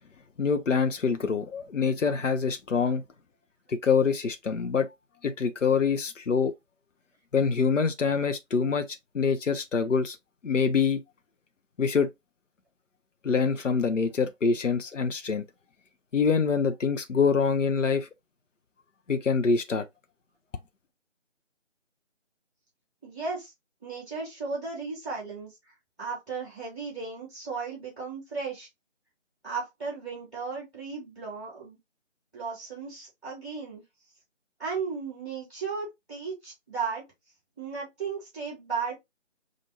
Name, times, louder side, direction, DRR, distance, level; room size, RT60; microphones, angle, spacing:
voice 1, 0.4-3.0 3.7-4.9 5.2-6.5 7.3-10.2 10.4-11.0 11.8-12.1 13.2-15.4 16.1-18.1 19.1-19.8, left 5 dB, 80° left, 0.7 m, -25 dB
voice 2, 23.0-23.5 23.8-25.6 26.0-28.7 29.4-31.8 32.3-33.8 34.6-37.1 37.6-38.9, right 5 dB, ahead, 2.4 m, -35 dB
5.3 x 2.6 x 2.9 m
figure-of-eight pair, 160°, 37 cm